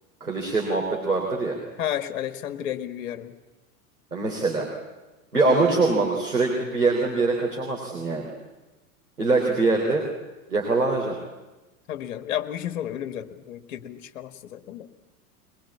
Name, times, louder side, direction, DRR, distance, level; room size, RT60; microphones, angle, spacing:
voice 1, 0.2-1.6 4.1-4.7 5.3-8.3 9.2-10.0 10.5-11.2, right 3 dB, 85° right, -1 dB, 3.5 m, -23 dB
voice 2, 1.8-3.3 5.7-6.2 11.9-14.9, left 11 dB, 60° left, 8 dB, 1.8 m, -32 dB
22.0 x 21.0 x 8.5 m, 1.1 s
figure-of-eight pair, 90°, 44 cm